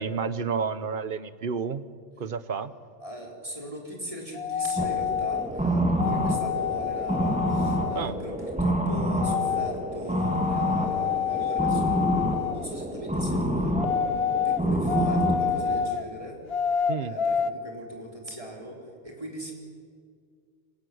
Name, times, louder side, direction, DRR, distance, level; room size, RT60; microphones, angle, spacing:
voice 1, 0.0-1.9 2.2-2.8 7.9-8.2 16.9-17.1, right 6 dB, 50° right, 14 dB, 1.0 m, -30 dB
voice 2, 3.0-12.0 12.5-13.8 14.1-19.5, equal, 30° right, 0 dB, 4.0 m, -40 dB
sound 1, 4.3-5.5 6.0-8.1 9.2-9.8 10.1-12.7 13.7-16.0 16.5-17.5, left 8 dB, 60° left, 1.0 m, -28 dB
sound 2, 4.8-15.9, right 1 dB, 5° right, 1.6 m, -28 dB
26.0 x 15.0 x 9.5 m, 2.1 s
omnidirectional pair, 1.2 m